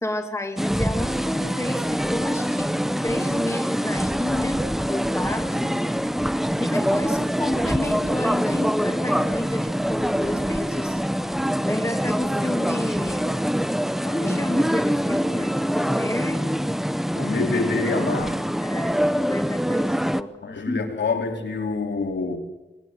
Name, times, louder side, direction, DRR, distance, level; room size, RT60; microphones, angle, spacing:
voice 1, 0.0-2.7 3.0-5.9 6.6-11.0 11.7-13.4 14.0-16.5 18.6-19.0 19.3-20.8, left 1 dB, 15° left, 2.5 m, -31 dB
sound 1, 0.6-20.2, equal, ahead, 0.8 m, -24 dB
voice 2, 17.1-18.4 20.4-22.4, left 4 dB, 70° left, 3.2 m, -26 dB
26.5 x 19.5 x 9.4 m
wide cardioid pair, 100°, 19 cm